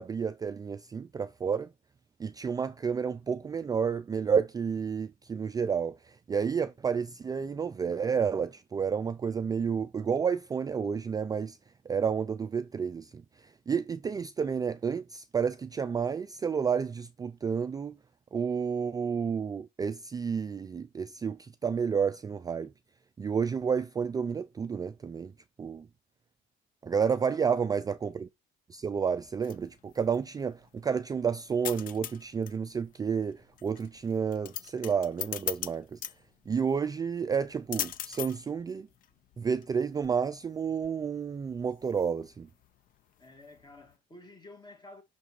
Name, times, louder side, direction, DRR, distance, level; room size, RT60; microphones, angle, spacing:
voice 1, 0.0-1.7 2.2-6.0 6.3-11.6 11.9-13.1 13.7-17.9 18.3-22.7 23.2-25.3 25.6-25.9 26.8-28.3 28.7-36.0 36.5-38.9 39.4-42.5, right 6 dB, 20° right, 0.3 m, -30 dB
voice 2, 27.2-27.6 28.7-28.8 43.2-45.0, left 2 dB, 25° left, 1.9 m, -52 dB
sound 1, 29.2-44.0, left 11 dB, 55° left, 0.5 m, -42 dB
5.9 x 3.4 x 4.8 m
cardioid pair, 110°, 17 cm